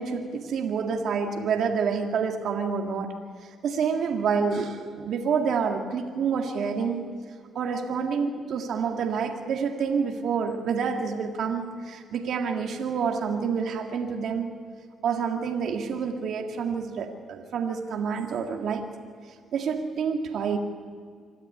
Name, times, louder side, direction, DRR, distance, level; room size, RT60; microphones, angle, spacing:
voice 1, 0.0-7.0 7.6-14.5 15.0-18.9 19.5-20.6, right 6 dB, 70° right, 3 dB, 2.0 m, -28 dB
26.0 x 13.0 x 10.0 m, 2.1 s
cardioid pair, 90°, 0 cm